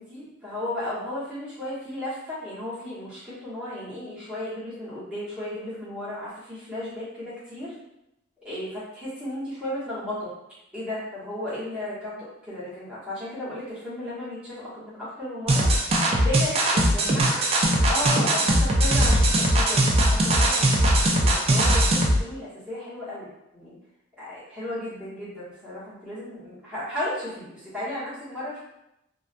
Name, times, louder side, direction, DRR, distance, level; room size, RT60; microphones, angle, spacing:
voice 1, 0.0-7.7 8.4-10.3 10.7-12.2 12.5-15.7 16.1-17.4 17.9-23.7 24.2-28.6, left 1 dB, 5° right, -12 dB, 1.1 m, -34 dB
sound 1, 15.5-22.2, right 1 dB, 30° right, 0.3 m, -20 dB
2.4 x 2.2 x 2.5 m, 0.84 s
head